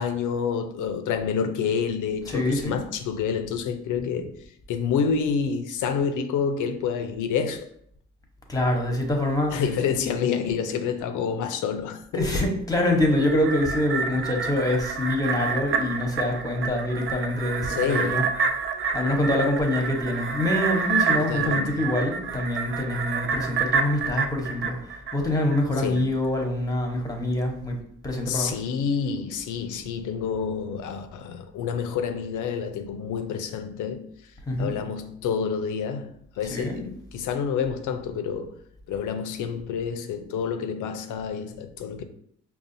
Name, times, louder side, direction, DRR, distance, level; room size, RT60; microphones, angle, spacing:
voice 1, 0.0-4.4 4.7-7.7 9.5-12.0 12.3-12.5 17.7-18.2 21.2-21.9 25.8-26.1 28.3-34.1 34.6-38.6 38.9-42.0, left 6 dB, 80° left, 0.6 m, -28 dB
voice 2, 2.3-2.8 8.5-9.6 10.0-10.1 12.1-18.3 18.9-27.8 28.0-28.6 34.5-34.8 36.5-36.8, left 1 dB, 10° left, 1.0 m, -25 dB
sound 1, 13.0-25.6 26.0-26.1, right 5 dB, 45° right, 0.5 m, -28 dB
5.4 x 2.3 x 2.6 m
cardioid pair, 90°, 30 cm